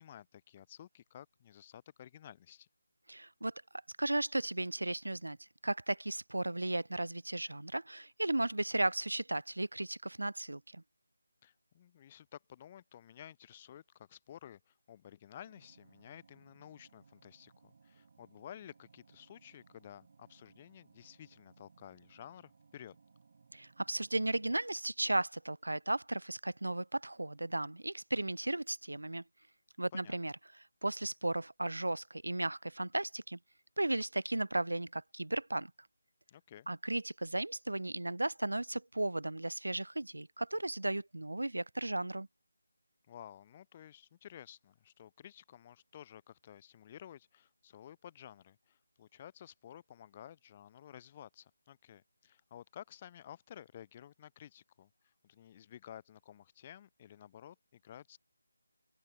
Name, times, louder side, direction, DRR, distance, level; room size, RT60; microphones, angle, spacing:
voice 1, 0.0-2.7 11.4-22.9 29.9-30.2 36.3-36.7 43.1-58.2, left 10 dB, 25° left, 1.2 m, -53 dB
voice 2, 3.1-3.5 4.0-5.4 5.6-10.8 23.5-29.2 29.8-30.3 30.8-33.4 33.8-35.7 36.7-42.3, right 2 dB, 75° right, 1.9 m, -35 dB
sound 1, 15.4-24.5, right 5 dB, 45° right, 6.4 m, -65 dB
open air
figure-of-eight pair, 160°, 0 cm